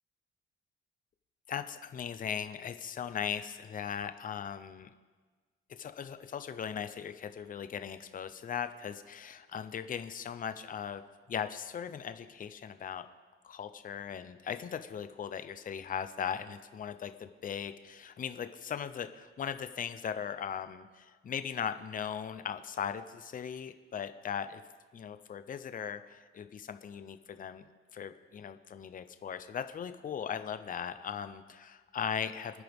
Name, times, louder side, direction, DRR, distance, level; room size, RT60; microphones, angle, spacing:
voice 1, 1.5-4.9 5.7-11.0 11.3-13.1 13.4-24.6 24.9-27.7 27.9-32.6, left 8 dB, 40° left, 10 dB, 0.7 m, -38 dB
27.0 x 9.9 x 3.6 m, 1.4 s
cardioid pair, 140°, 21 cm